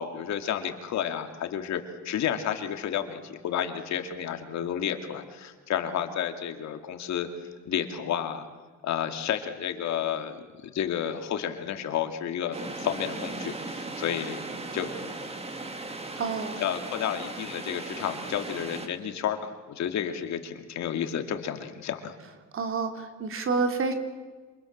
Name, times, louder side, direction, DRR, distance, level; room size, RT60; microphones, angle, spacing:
voice 1, 0.0-7.3 7.6-8.4 8.8-14.4 14.7-14.9 16.6-22.1, left 9 dB, 70° left, 6 dB, 2.6 m, -31 dB
sound 1, 12.5-18.9, right 2 dB, 20° right, 2.5 m, -37 dB
voice 2, 16.2-16.6 22.5-23.9, right 4 dB, 45° right, 6 dB, 3.1 m, -28 dB
28.0 x 27.5 x 7.5 m, 1.4 s
cardioid pair, 140°, 29 cm